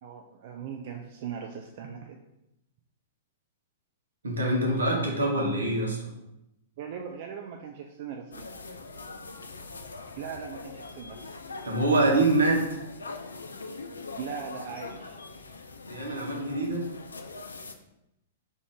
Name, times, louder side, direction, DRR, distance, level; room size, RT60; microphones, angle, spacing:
voice 1, 0.0-2.2 5.2-5.3 6.8-8.5 10.2-11.3 14.2-15.2, right 7 dB, 50° right, 3 dB, 0.3 m, -39 dB
voice 2, 4.2-6.1 11.6-12.8 15.9-16.8, right 2 dB, 80° right, -1 dB, 0.9 m, -25 dB
sound 1, 8.3-17.7, left 3 dB, 80° left, 0.3 m, -42 dB
3.4 x 2.5 x 3.5 m, 0.86 s
figure-of-eight pair, 105°, 0 cm